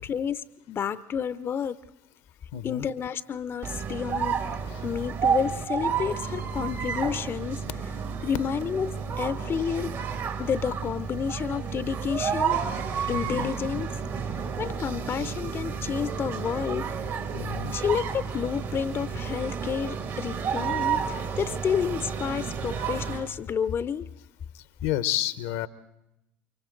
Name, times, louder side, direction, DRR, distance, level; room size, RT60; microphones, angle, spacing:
voice 1, 0.1-1.8 2.6-4.4 4.8-7.6 8.2-10.0 10.4-12.6 13.1-14.0 14.6-16.9 17.7-24.1, left 7 dB, 40° left, 14 dB, 0.7 m, -30 dB
voice 2, 2.5-2.9 4.7-4.9 13.1-13.5 17.3-17.7 24.5-25.7, left 13 dB, 70° left, 13 dB, 0.9 m, -31 dB
sound 1, 3.6-23.3, right 6 dB, 55° right, 2.1 m, -31 dB
29.5 x 24.5 x 3.9 m, 0.89 s
hypercardioid pair, 70°, 6 cm